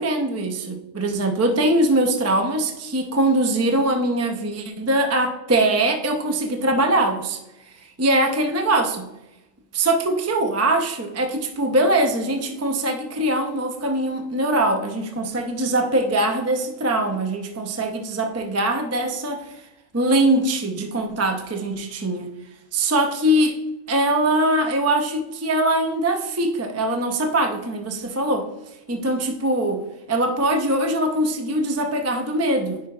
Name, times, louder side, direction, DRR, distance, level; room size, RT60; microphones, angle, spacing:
voice 1, 0.0-7.4 7.7-9.1 9.7-19.5 19.9-22.3 22.7-23.6 23.9-28.5 28.9-29.8 30.1-32.8, right 1 dB, 20° right, 4 dB, 0.4 m, -22 dB
10.0 x 4.8 x 2.3 m, 0.93 s
omnidirectional pair, 1.3 m